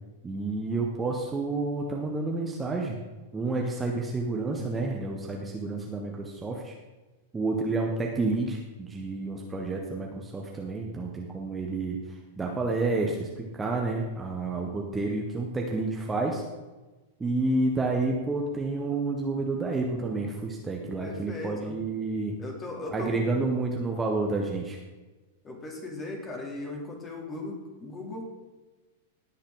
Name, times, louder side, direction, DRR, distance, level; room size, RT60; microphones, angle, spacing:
voice 1, 0.2-3.0 3.3-6.7 7.3-12.0 12.4-16.4 17.2-22.4 22.9-24.8, right 3 dB, 15° right, 0 dB, 1.5 m, -29 dB
voice 2, 21.0-21.8 22.4-23.3 25.4-28.3, left 2 dB, 20° left, 0 dB, 3.1 m, -37 dB
18.5 x 6.4 x 4.0 m, 1.2 s
figure-of-eight pair, 95°, 0 cm